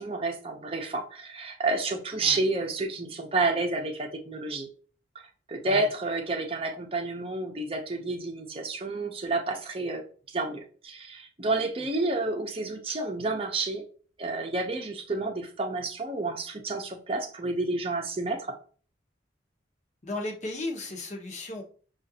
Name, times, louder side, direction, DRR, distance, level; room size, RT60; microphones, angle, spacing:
voice 1, 0.0-4.7 5.5-10.0 10.3-13.8 14.2-18.4, right 3 dB, 30° right, 3 dB, 0.7 m, -30 dB
voice 2, 20.0-21.6, left 2 dB, 40° left, 1 dB, 0.8 m, -35 dB
6.3 x 2.5 x 2.7 m, 0.41 s
head